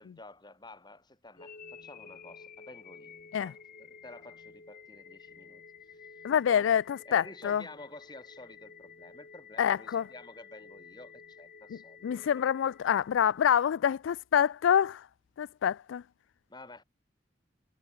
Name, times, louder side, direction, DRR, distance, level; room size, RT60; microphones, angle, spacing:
voice 1, 0.0-6.8 7.1-12.2 12.6-12.7 16.5-16.8, left 2 dB, 20° left, 7.1 m, -51 dB
sound 1, 1.4-13.4, left 5 dB, 45° left, 2.4 m, -52 dB
voice 2, 6.2-7.6 9.6-10.1 11.7-15.1 15.4-16.0, left 8 dB, 80° left, 0.3 m, -27 dB
head